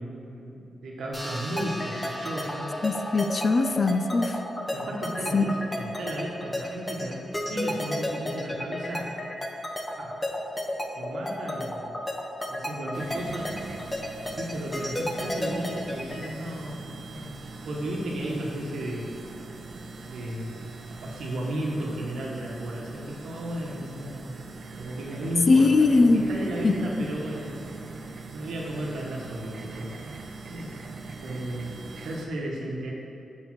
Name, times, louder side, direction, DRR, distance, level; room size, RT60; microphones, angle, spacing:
voice 1, 0.0-2.8 4.7-7.2 7.5-9.1 10.0-10.1 10.9-11.9 12.5-13.6 14.4-19.1 20.1-20.6 20.9-30.7 31.2-31.7 32.0-32.9, right 1 dB, 90° right, -2 dB, 1.2 m, -34 dB
sound 1, 1.1-6.0, equal, 5° right, 1.4 m, -41 dB
sound 2, 1.6-16.3, left 1 dB, 20° left, 0.9 m, -32 dB
voice 2, 2.8-4.4 5.3-5.4 25.5-26.2 26.6-26.7, left 3 dB, 45° left, 8 dB, 0.4 m, -20 dB
sound 3, 12.9-32.2, right 3 dB, 65° right, 0.6 m, -41 dB
6.6 x 4.7 x 5.9 m, 2.7 s
cardioid pair, 90°, 0 cm